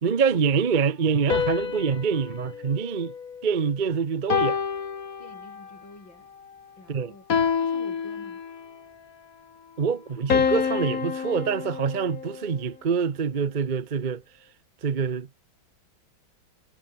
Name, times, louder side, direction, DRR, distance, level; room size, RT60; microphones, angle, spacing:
voice 1, 0.0-3.1 3.4-4.6 6.9-7.1 9.8-14.2 14.8-15.3, right 6 dB, 40° right, 0.7 m, -25 dB
sound 1, 1.3-3.7 4.3-5.8 7.3-8.8 10.3-12.6, left 6 dB, 45° left, 1.9 m, -28 dB
voice 2, 5.2-6.3 6.8-7.2 7.6-8.4, left 2 dB, 65° left, 8.7 m, -48 dB
omnidirectional pair, 2.2 m